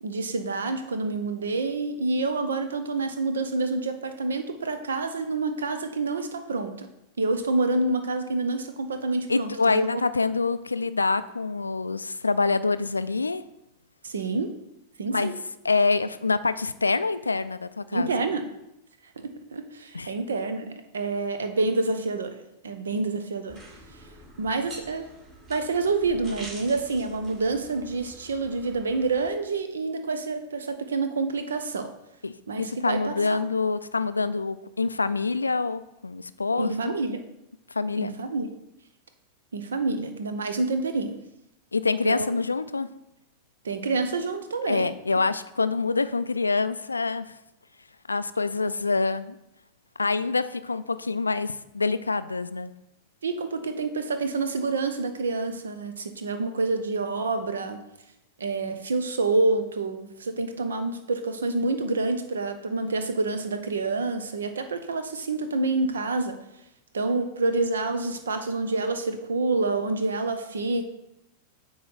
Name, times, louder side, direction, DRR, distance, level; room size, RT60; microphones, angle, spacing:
voice 1, 0.0-6.9 7.2-10.0 14.0-14.5 15.0-15.3 17.9-18.4 19.2-23.6 24.4-25.1 25.5-31.9 32.5-33.4 36.6-37.2 38.0-38.6 39.5-41.2 42.0-42.3 43.6-44.9 53.2-57.8 58.4-66.4 66.9-70.9, right 3 dB, 70° right, 8 dB, 0.7 m, -28 dB
voice 2, 9.3-13.4 15.1-15.4 15.6-18.1 19.9-20.1 32.2-36.9 37.7-38.1 41.7-42.9 44.7-47.4 48.1-49.4 50.0-52.7, left 4 dB, 80° left, 13 dB, 0.3 m, -26 dB
sound 1, 23.5-29.3, right 1 dB, 30° right, 2.6 m, -46 dB
8.4 x 3.1 x 5.6 m, 0.86 s
figure-of-eight pair, 90°, 0 cm